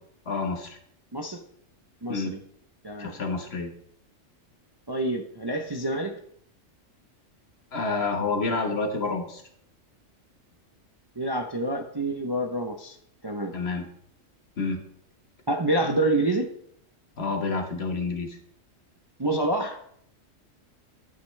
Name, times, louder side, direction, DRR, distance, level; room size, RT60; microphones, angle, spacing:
voice 1, 0.3-0.8 2.1-2.3 3.0-3.7 7.7-9.4 13.5-13.9 14.6-14.8 17.2-18.4, left 3 dB, 55° left, 5 dB, 1.5 m, -28 dB
voice 2, 2.0-2.4 2.8-3.2 4.9-6.2 11.2-13.0 13.2-13.6 15.5-16.5 19.2-19.8, right 1 dB, 25° right, 4 dB, 0.6 m, -27 dB
11.0 x 9.5 x 3.3 m, 0.69 s
omnidirectional pair, 1.3 m